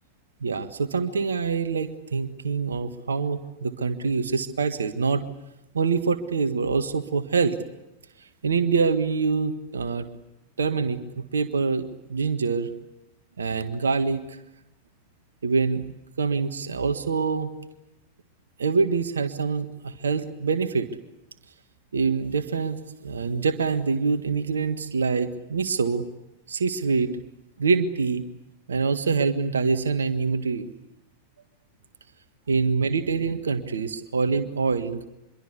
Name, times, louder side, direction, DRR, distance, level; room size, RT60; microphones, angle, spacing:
voice 1, 0.4-5.2 5.7-7.6 8.4-10.1 10.6-11.0 11.3-12.7 13.4-14.2 15.4-15.8 16.2-17.5 18.6-20.9 21.9-26.0 26.5-27.1 27.6-28.2 28.7-30.7 32.5-35.0, right 5 dB, 70° right, 10 dB, 1.6 m, -25 dB
26.0 x 23.0 x 8.3 m, 0.92 s
figure-of-eight pair, 90°, 0 cm